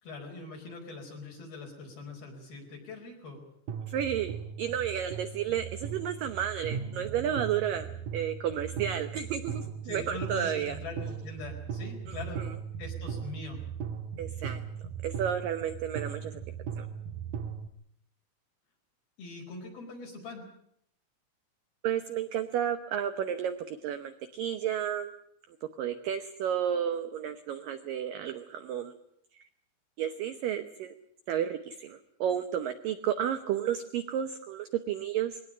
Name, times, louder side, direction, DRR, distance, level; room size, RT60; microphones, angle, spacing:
voice 1, 0.0-3.4 9.8-12.4 12.8-13.6 19.2-20.4, left 3 dB, 55° left, 0 dB, 6.4 m, -42 dB
sound 1, 3.7-17.7, right 7 dB, 70° right, 2.4 m, -38 dB
voice 2, 3.9-10.8 12.1-12.5 14.2-14.6 15.0-16.4 16.8-16.9 21.8-25.1 25.8-28.9 30.0-30.9 31.3-35.4, right 9 dB, 85° right, 9 dB, 1.9 m, -32 dB
22.0 x 18.0 x 8.6 m, 0.71 s
omnidirectional pair, 5.4 m